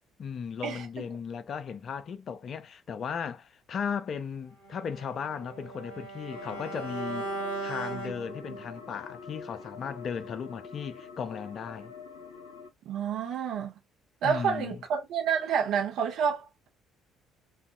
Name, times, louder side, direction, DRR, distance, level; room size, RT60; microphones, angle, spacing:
voice 1, 0.2-7.3 7.6-11.9 14.2-14.8, left 7 dB, 45° left, 0.4 m, -36 dB
Bowed string instrument, 4.6-8.8, right 3 dB, 80° right, 0.9 m, -38 dB
sound 1, 6.3-12.7, left 5 dB, 75° left, 0.7 m, -45 dB
voice 2, 12.9-13.7 14.2-16.7, right 7 dB, 55° right, 0.8 m, -29 dB
2.4 x 2.3 x 2.4 m
figure-of-eight pair, 50°, 0 cm